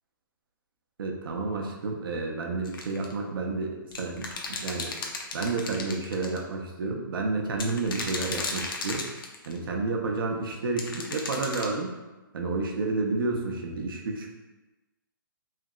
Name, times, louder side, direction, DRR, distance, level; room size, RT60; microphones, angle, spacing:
voice 1, 1.0-4.9 5.3-9.1 9.5-11.9 12.3-14.3, right 3 dB, 70° right, 1 dB, 0.6 m, -30 dB
sound 1, 2.6-3.1 3.9-6.4 7.5-9.6 10.8-11.7, left 3 dB, 70° left, 0.5 m, -35 dB
3.2 x 2.8 x 2.3 m, 1.1 s
hypercardioid pair, 150°, 12 cm